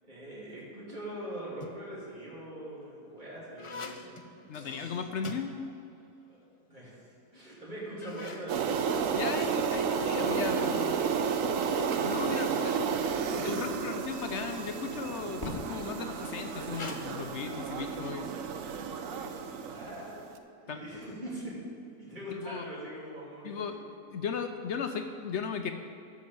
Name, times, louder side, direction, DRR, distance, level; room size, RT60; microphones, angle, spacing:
voice 1, 0.1-4.1 4.5-4.9 6.3-6.4 6.7-8.6 10.8-11.1 19.6-20.3 20.5-21.6 22.0-23.8, right 1 dB, 30° right, -7 dB, 3.2 m, -42 dB
sound 1, 1.4-2.0 2.7-6.1 6.4-6.5 7.2-7.3 7.8-10.4 11.6-15.8 16.7-17.0, left 3 dB, 45° left, 0.4 m, -47 dB
voice 2, 4.5-5.6 9.1-10.9 12.0-12.8 13.4-18.3 20.7-20.8 22.4-22.7 23.4-23.7 24.1-25.7, left 6 dB, 60° left, 6 dB, 0.8 m, -36 dB
sound 2, 8.5-20.3, right 6 dB, 65° right, 1.0 m, -32 dB
Fireworks, 15.4-18.3, left 1 dB, 15° left, 2.4 m, -45 dB
13.0 x 5.4 x 7.0 m, 2.7 s
omnidirectional pair, 1.6 m